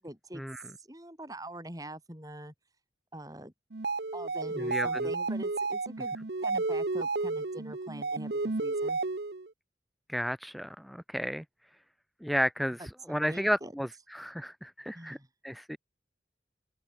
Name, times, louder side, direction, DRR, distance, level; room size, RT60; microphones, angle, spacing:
voice 1, 0.0-0.4 0.8-2.5 3.1-3.5 4.1-9.0 12.8-13.7 14.9-15.3, right 1 dB, 20° right, 6.2 m, -44 dB
sound 1, 3.7-9.5, right 3 dB, 65° right, 0.9 m, -32 dB
voice 2, 4.5-5.1 10.1-11.4 12.2-15.2 15.4-15.8, equal, ahead, 1.0 m, -33 dB
open air
head